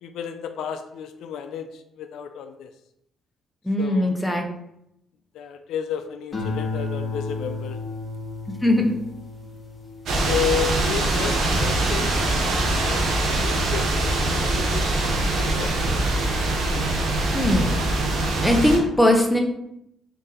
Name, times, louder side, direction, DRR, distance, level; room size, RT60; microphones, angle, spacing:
voice 1, 0.0-2.7 3.8-4.2 5.3-7.8 10.2-16.0, left 8 dB, 85° left, 7 dB, 0.3 m, -32 dB
voice 2, 3.7-4.5 8.6-8.9 17.3-17.8 18.4-19.4, left 1 dB, 5° left, 2 dB, 0.7 m, -20 dB
sound 1, 6.3-12.8 13.3-13.8, left 3 dB, 40° left, 1.1 m, -34 dB
sound 2, 10.1-18.8, right 2 dB, 75° right, 0.8 m, -23 dB
3.9 x 2.6 x 3.8 m, 0.79 s
cardioid pair, 90°, 0 cm